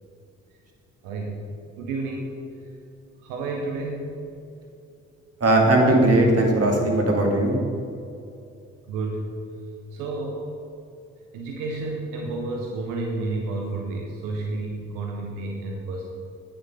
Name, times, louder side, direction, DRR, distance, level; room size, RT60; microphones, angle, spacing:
voice 1, 1.0-1.4 1.8-2.3 3.2-4.1 8.9-9.3 9.9-10.4 11.3-16.1, right 3 dB, 85° right, 1 dB, 1.0 m, -30 dB
voice 2, 5.4-7.6, right 1 dB, 50° right, 1 dB, 2.5 m, -18 dB
8.9 x 7.2 x 5.6 m, 2.6 s
hypercardioid pair, 45°, 32 cm